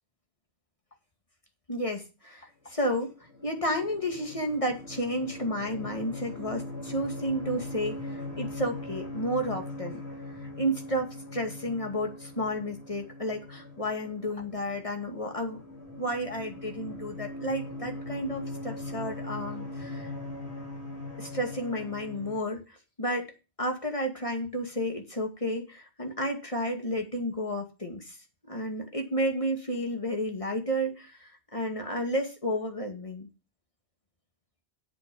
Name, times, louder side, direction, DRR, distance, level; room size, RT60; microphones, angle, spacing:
voice 1, 1.7-3.1 3.4-10.0 10.4-15.6 16.0-20.1 21.2-23.3 23.6-28.2 28.5-33.3, equal, 30° left, 3 dB, 2.3 m, -32 dB
sound 1, 3.0-22.4, left 2 dB, 80° left, 3.3 m, -40 dB
8.3 x 7.8 x 6.9 m, 0.30 s
omnidirectional pair, 1.1 m